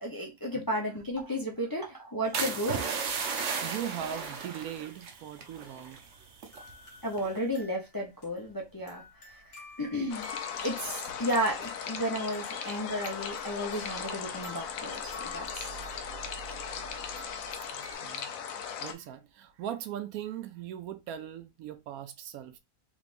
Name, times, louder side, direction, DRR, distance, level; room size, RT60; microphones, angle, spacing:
voice 1, 0.0-2.9 7.0-9.0 9.8-10.3 10.6-15.7, equal, 25° left, 0.5 m, -33 dB
sound 1, 2.3-6.7 7.2-7.5, right 5 dB, 55° right, 0.9 m, -35 dB
voice 2, 3.6-6.0 16.2-16.3 16.7-16.8 17.7-22.6, right 10 dB, 80° right, 1.0 m, -40 dB
sound 2, 5.6-17.9, left 1 dB, 50° left, 1.6 m, -49 dB
sound 3, 10.1-18.9, left 7 dB, 70° left, 1.0 m, -38 dB
3.4 x 3.3 x 2.5 m
omnidirectional pair, 1.5 m